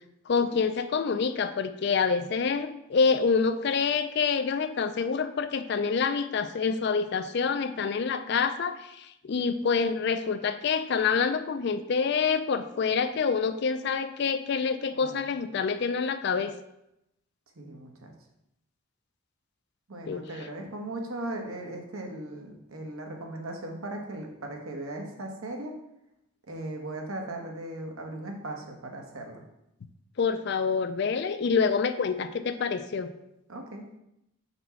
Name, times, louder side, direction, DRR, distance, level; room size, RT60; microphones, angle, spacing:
voice 1, 0.3-16.5 20.1-20.2 30.2-33.1, left 5 dB, 50° left, 11 dB, 0.4 m, -27 dB
voice 2, 17.6-18.1 19.9-25.7 26.5-29.4 33.5-33.9, right 1 dB, 80° right, 2 dB, 1.1 m, -38 dB
4.3 x 4.1 x 5.7 m, 0.83 s
head